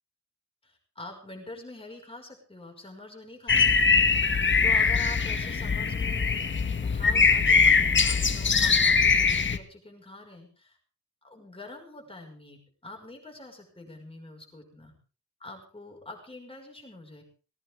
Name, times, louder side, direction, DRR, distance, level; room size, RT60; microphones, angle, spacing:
voice 1, 0.6-4.0 4.6-6.5 6.8-10.8 11.2-14.9 15.4-17.2, left 2 dB, 20° left, 2 dB, 5.4 m, -45 dB
sound 1, 3.5-9.6, left 5 dB, 40° left, 1.5 m, -22 dB
19.0 x 18.0 x 3.6 m, 0.37 s
wide cardioid pair, 175°, 30 cm